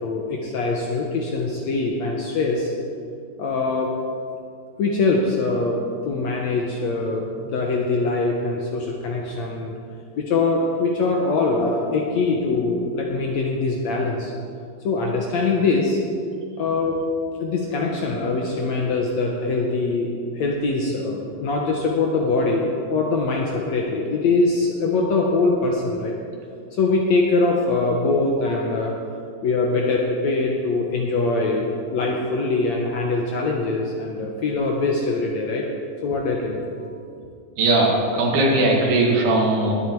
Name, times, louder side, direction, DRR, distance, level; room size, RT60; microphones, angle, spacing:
voice 1, 0.0-2.7 3.4-3.9 4.8-9.7 10.2-14.3 14.8-16.0 16.6-17.0 17.4-26.2 26.7-28.9 29.4-35.7 36.0-36.7, left 3 dB, 70° left, 0 dB, 1.7 m, -23 dB
voice 2, 37.6-39.7, right 2 dB, 85° right, -2 dB, 4.0 m, -19 dB
20.0 x 8.3 x 4.6 m, 2.4 s
omnidirectional pair, 4.4 m